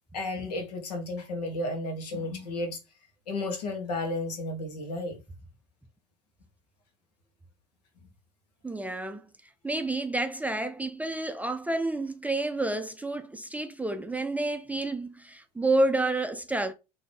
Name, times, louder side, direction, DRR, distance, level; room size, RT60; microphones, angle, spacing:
voice 1, 0.1-2.8 3.3-5.2, left 2 dB, 75° left, 1.2 m, -33 dB
voice 2, 8.6-9.3 9.6-16.7, right 2 dB, 5° right, 0.4 m, -29 dB
3.9 x 2.7 x 3.2 m
hypercardioid pair, 70°, 21 cm